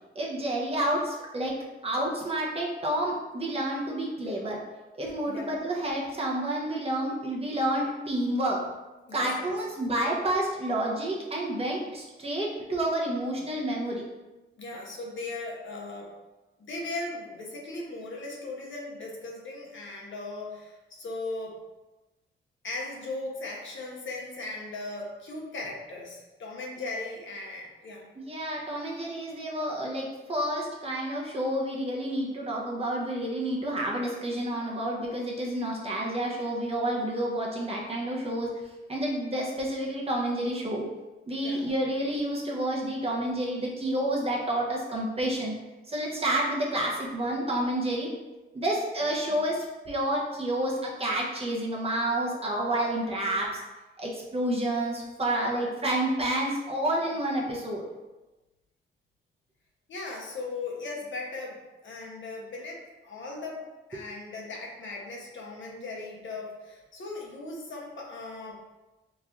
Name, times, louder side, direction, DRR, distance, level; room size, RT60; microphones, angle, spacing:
voice 1, 0.1-1.5 1.8-4.6 5.0-8.6 9.1-14.0 28.2-38.5 38.9-40.8 41.3-45.5 45.9-48.1 48.5-53.5 54.0-57.8, right 1 dB, 30° right, -3 dB, 0.9 m, -29 dB
voice 2, 9.1-9.5 14.6-16.1 16.6-21.6 22.6-28.1 41.4-41.7 59.9-63.6 63.9-68.6, left 2 dB, 65° left, -2 dB, 0.9 m, -38 dB
3.1 x 2.4 x 3.7 m, 1.1 s
cardioid pair, 85°, 21 cm